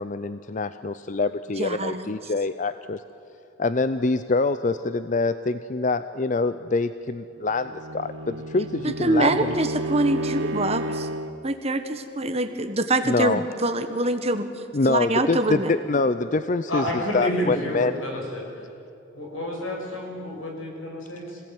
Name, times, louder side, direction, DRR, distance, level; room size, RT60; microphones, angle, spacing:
voice 1, 0.0-3.0 3.6-9.5 13.0-13.4 14.7-18.0, left 3 dB, 40° left, 12 dB, 0.5 m, -25 dB
voice 2, 1.6-2.1 8.8-11.1 11.4-14.5 14.9-15.7, right 2 dB, 30° right, 8 dB, 1.4 m, -24 dB
Bowed string instrument, 7.5-11.4, right 1 dB, 90° right, 1.4 m, -31 dB
voice 3, 16.7-18.5 19.1-21.4, equal, 85° left, 0 dB, 6.7 m, -30 dB
25.5 x 18.0 x 9.4 m, 2.7 s
head